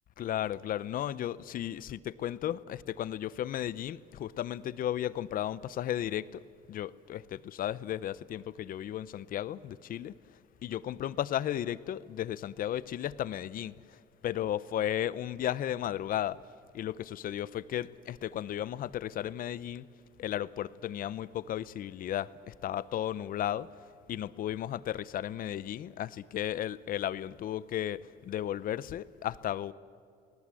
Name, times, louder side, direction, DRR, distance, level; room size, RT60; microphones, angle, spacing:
voice 1, 0.2-6.4 6.7-10.1 10.6-13.7 14.2-16.4 16.7-19.9 20.2-23.7 24.1-29.7, left 11 dB, 55° left, 0.8 m, -34 dB
28.0 x 19.0 x 7.7 m
cardioid pair, 110°, 17 cm